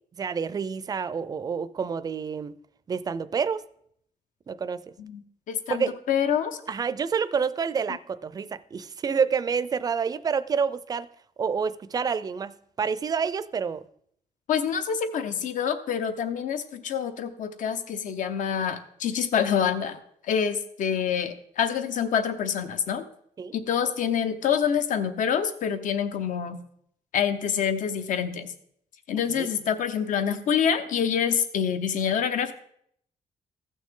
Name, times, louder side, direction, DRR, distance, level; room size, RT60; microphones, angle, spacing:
voice 1, 0.2-2.5 2.9-3.6 4.5-4.8 5.7-6.0 6.7-11.1 11.4-13.8 23.4-23.5 29.3-29.5, right 6 dB, 30° right, 0.4 m, -28 dB
voice 2, 5.0-6.6 14.5-23.0 23.5-26.6 27.1-28.5 29.1-32.5, left 8 dB, 70° left, 0.8 m, -26 dB
15.0 x 6.3 x 3.7 m
wide cardioid pair, 155°, 13 cm